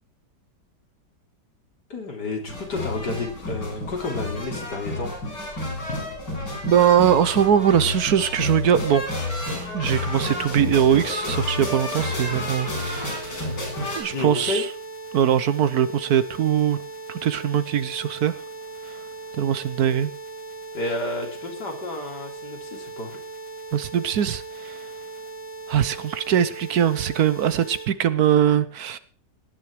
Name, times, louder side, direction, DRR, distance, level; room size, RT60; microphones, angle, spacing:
voice 1, 1.9-5.1 14.0-14.6 20.7-23.2, left 2 dB, 75° left, 2 dB, 4.0 m, -31 dB
sound 1, 2.5-14.0, left 2 dB, 90° left, 6.5 m, -30 dB
voice 2, 6.7-9.0 9.5-13.5 14.0-14.6 15.1-16.8 17.1-18.3 19.4-20.1 23.7-24.8 25.7-29.0, right 9 dB, 65° right, 15 dB, 1.3 m, -21 dB
sound 2, 10.1-27.9, right 3 dB, 55° left, 2.8 m, -39 dB
18.0 x 9.9 x 4.9 m, 0.41 s
omnidirectional pair, 1.8 m